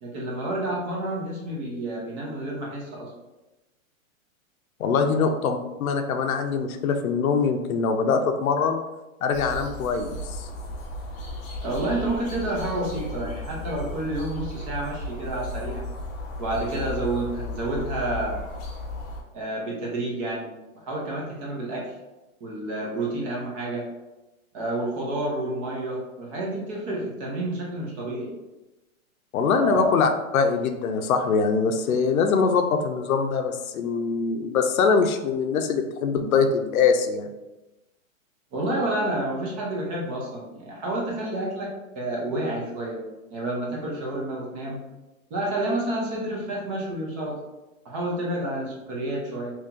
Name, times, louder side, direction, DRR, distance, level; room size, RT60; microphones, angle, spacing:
voice 1, 0.0-3.1 5.1-5.2 11.6-15.8 16.4-18.4 19.3-20.5 20.7-21.9 22.4-23.9 24.5-28.3 29.6-29.8 38.5-43.0 43.3-44.8 45.3-47.4 47.8-49.5, right 1 dB, 25° right, -3 dB, 0.7 m, -29 dB
voice 2, 4.8-8.8 9.2-10.5 29.3-37.3, left 5 dB, 80° left, 6 dB, 0.6 m, -23 dB
sound 1, 9.3-19.2, left 1 dB, 20° left, 0.5 m, -35 dB
2.9 x 2.7 x 3.7 m, 1.0 s
hypercardioid pair, 150°, 41 cm